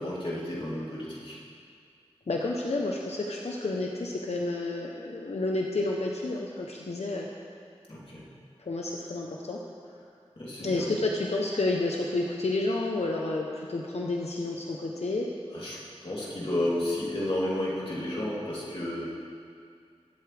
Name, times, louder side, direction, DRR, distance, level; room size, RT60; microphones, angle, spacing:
voice 1, 0.0-1.4 7.9-8.2 10.4-10.8 15.5-19.0, left 1 dB, 60° left, -7 dB, 3.4 m, -32 dB
voice 2, 2.3-7.3 8.6-9.6 10.6-15.3, left 2 dB, 80° left, -1 dB, 0.9 m, -30 dB
21.5 x 8.1 x 3.5 m, 2.3 s
wide cardioid pair, 45°, 11 cm